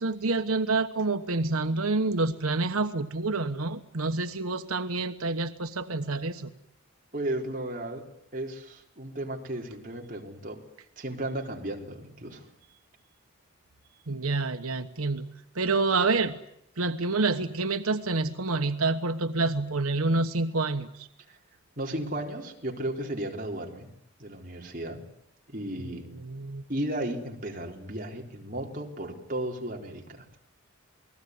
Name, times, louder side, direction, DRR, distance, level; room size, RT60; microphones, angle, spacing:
voice 1, 0.0-6.5 14.1-15.3 15.5-16.3 16.8-21.1 26.2-26.6, right 3 dB, 90° right, 8 dB, 1.3 m, -28 dB
voice 2, 7.1-8.0 8.3-10.6 11.0-12.5 21.3-21.4 21.8-23.9 24.2-25.0 25.5-26.1 26.7-30.3, right 1 dB, 40° right, 1 dB, 4.1 m, -34 dB
28.5 x 20.5 x 9.6 m, 0.76 s
head